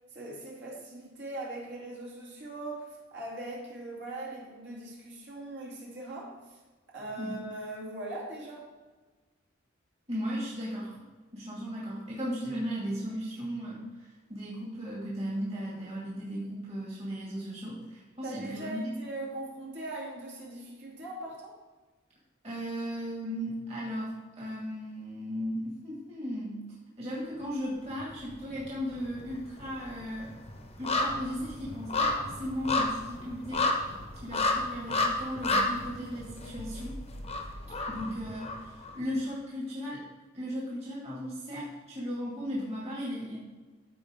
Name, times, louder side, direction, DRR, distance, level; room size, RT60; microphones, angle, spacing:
voice 1, 0.1-6.6 6.9-8.6 18.2-21.5, right 2 dB, 60° right, -4 dB, 2.7 m, -40 dB
voice 2, 10.1-11.0 11.3-18.9 22.4-26.6 27.0-30.3 30.8-33.7 34.2-36.9 37.9-40.0 40.3-43.4, equal, 30° right, -5 dB, 2.1 m, -36 dB
sound 1, 27.9-28.7 29.0-38.9 39.3-39.4, left 2 dB, 30° left, 0.9 m, -31 dB
14.0 x 4.7 x 3.7 m, 1.3 s
head